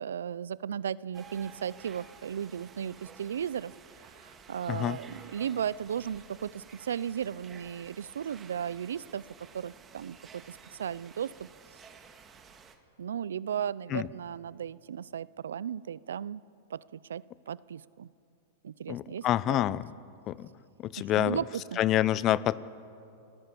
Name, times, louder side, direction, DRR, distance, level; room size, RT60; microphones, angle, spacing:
voice 1, 0.0-3.7 4.2-11.5 13.0-16.4 16.7-18.1 18.6-19.8 21.0-21.8, right 8 dB, 85° right, 21 dB, 0.4 m, -36 dB
sound 1, 1.1-12.7, right 6 dB, 25° right, 1.7 m, -53 dB
voice 2, 18.9-19.9 20.3-20.5 20.8-21.4 21.8-22.6, left 13 dB, 35° left, 19 dB, 0.6 m, -27 dB
28.5 x 17.0 x 6.9 m, 2.6 s
hypercardioid pair, 125°, 0 cm